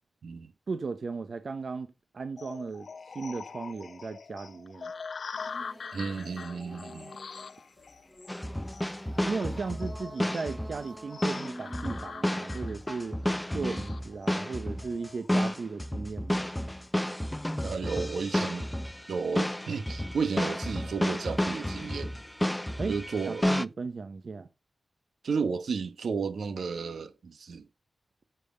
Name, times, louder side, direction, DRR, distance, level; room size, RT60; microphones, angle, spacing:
voice 1, 0.7-1.9 2.1-4.9 9.2-13.2 13.5-16.5 22.8-23.0 23.3-24.5, right 4 dB, 60° right, 0.8 m, -36 dB
sound 1, 2.4-15.4, left 5 dB, 65° left, 0.4 m, -44 dB
sound 2, 5.3-12.7, right 1 dB, 10° right, 1.3 m, -48 dB
voice 2, 5.9-7.2 17.6-18.7 19.1-22.2 22.9-23.5 25.2-27.7, right 5 dB, 85° right, 1.2 m, -33 dB
sound 3, 8.3-23.6, left 1 dB, 10° left, 0.4 m, -31 dB
9.1 x 6.8 x 4.0 m
wide cardioid pair, 110°, 0 cm